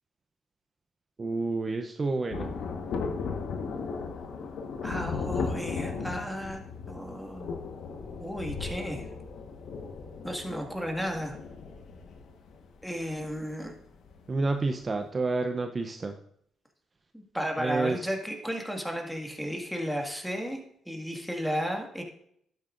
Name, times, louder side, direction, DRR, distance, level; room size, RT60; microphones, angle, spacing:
voice 1, 1.2-2.5 14.3-16.2 17.6-18.1, right 3 dB, 30° right, 6 dB, 0.6 m, -29 dB
Thunder, 2.3-14.3 14.6-14.7, left 5 dB, 70° left, 1.3 m, -36 dB
voice 2, 4.8-6.6 6.9-7.5 8.2-9.1 10.2-11.4 12.8-13.7 17.1-20.6 20.9-22.0, equal, ahead, 2 dB, 1.9 m, -33 dB
11.5 x 8.8 x 2.6 m, 0.71 s
cardioid pair, 90°, 0 cm